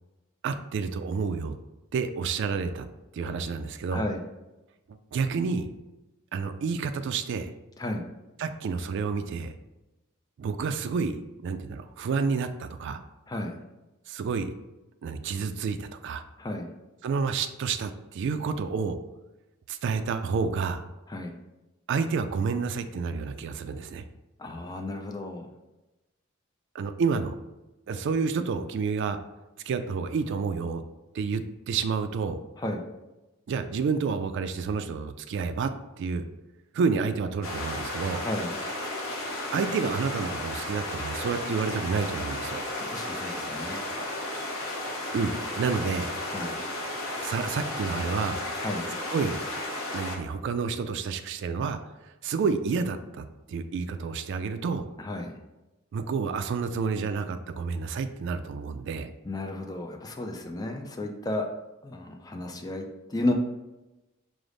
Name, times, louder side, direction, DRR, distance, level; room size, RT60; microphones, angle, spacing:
voice 1, 0.4-1.5 1.9-2.9 3.1-4.0 4.9-5.7 6.3-7.5 8.4-9.5 10.4-11.2 11.4-13.0 14.1-14.5 15.0-16.2 17.0-19.0 19.7-20.8 21.9-24.0 26.7-27.3 27.9-29.2 29.7-30.8 31.1-32.4 33.5-35.7 36.0-36.3 36.7-38.2 39.5-42.6 45.1-46.1 47.2-48.4 49.1-49.4 49.9-51.8 52.0-54.8 55.9-59.1, right 5 dB, 60° right, 9 dB, 0.3 m, -29 dB
voice 2, 3.9-4.2 7.8-8.1 13.3-13.6 16.4-16.7 21.1-21.3 24.4-25.5 32.6-32.9 38.2-38.6 42.8-43.9 46.3-46.6 48.6-48.9 55.0-55.4 59.2-61.5 61.8-63.3, left 1 dB, 20° left, 3 dB, 0.4 m, -33 dB
sound 1, 37.4-50.2, left 1 dB, 65° left, 0.8 m, -34 dB
4.9 x 2.0 x 3.8 m, 1.0 s
head